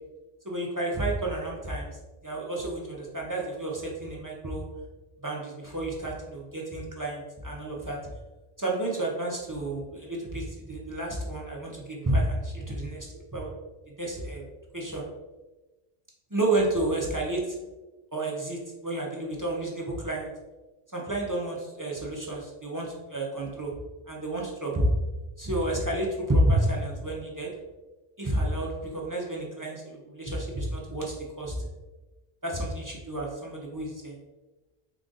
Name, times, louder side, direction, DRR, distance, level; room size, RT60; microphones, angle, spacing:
voice 1, 0.4-1.9 2.2-4.7 5.2-8.0 8.6-13.5 13.9-14.4 14.7-15.1 16.3-17.6 18.1-20.3 20.9-23.7 24.1-24.9 25.4-27.5 28.2-31.7 32.4-34.2, right 1 dB, 25° right, -4 dB, 0.5 m, -30 dB
3.8 x 2.4 x 3.8 m, 1.1 s
omnidirectional pair, 1.0 m